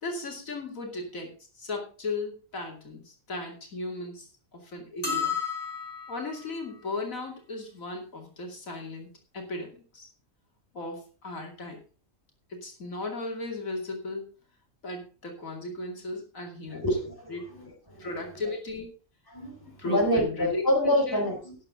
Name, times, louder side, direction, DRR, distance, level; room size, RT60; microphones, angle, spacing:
voice 1, 0.0-5.4 6.1-9.1 9.3-10.1 10.7-11.8 12.5-14.3 14.8-16.8 17.3-17.4 18.0-18.9 19.8-20.6 21.1-21.2, left 2 dB, 80° left, 2 dB, 3.0 m, -36 dB
sound 1, 5.0-6.4, left 6 dB, 45° left, 4.1 m, -31 dB
voice 2, 16.7-18.1 19.3-21.6, left 1 dB, 15° left, 1 dB, 4.2 m, -27 dB
13.0 x 9.7 x 3.8 m, 0.35 s
omnidirectional pair, 1.4 m